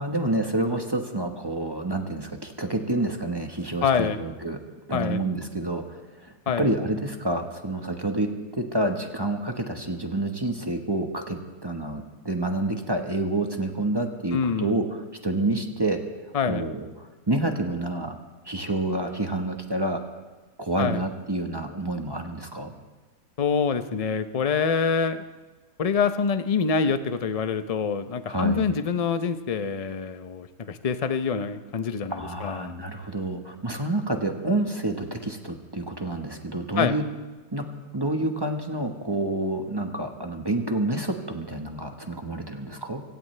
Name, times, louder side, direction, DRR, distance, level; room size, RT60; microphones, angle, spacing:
voice 1, 0.0-4.6 4.9-16.0 16.4-18.2 18.4-20.0 20.6-22.7 28.3-28.7 32.1-37.0 37.5-37.7 37.9-43.0, right 2 dB, 15° right, 4 dB, 1.1 m, -28 dB
voice 2, 3.8-4.2 4.9-5.2 6.5-6.7 14.3-14.8 16.3-16.6 20.8-21.0 23.4-25.2 25.8-32.7 36.8-36.9, left 6 dB, 50° left, 10 dB, 0.4 m, -25 dB
26.0 x 16.5 x 3.3 m, 1.2 s
omnidirectional pair, 1.7 m